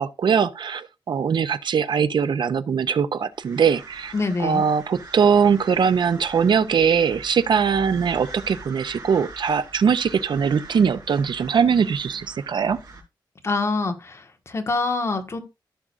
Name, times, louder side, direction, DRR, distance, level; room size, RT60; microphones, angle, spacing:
voice 1, 0.0-4.1 4.4-12.8, right 6 dB, 70° right, 0.7 m, -21 dB
sound 1, 3.3-13.0, right 3 dB, 55° right, 5.0 m, -43 dB
voice 2, 4.1-4.7 13.4-15.4, left 3 dB, 35° left, 1.5 m, -25 dB
15.0 x 6.2 x 2.6 m
wide cardioid pair, 160°, 8 cm